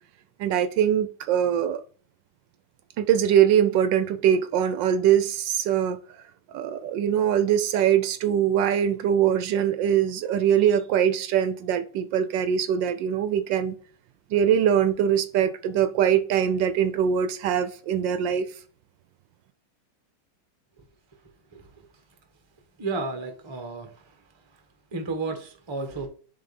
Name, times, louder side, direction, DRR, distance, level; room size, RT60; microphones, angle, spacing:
voice 1, 0.4-1.8 3.0-6.0 6.5-13.8 14.3-18.5, right 9 dB, 75° right, 1.2 m, -22 dB
voice 2, 21.5-21.9 22.8-24.0 24.9-26.1, right 3 dB, 20° right, 0.7 m, -32 dB
6.5 x 3.8 x 4.1 m
omnidirectional pair, 2.1 m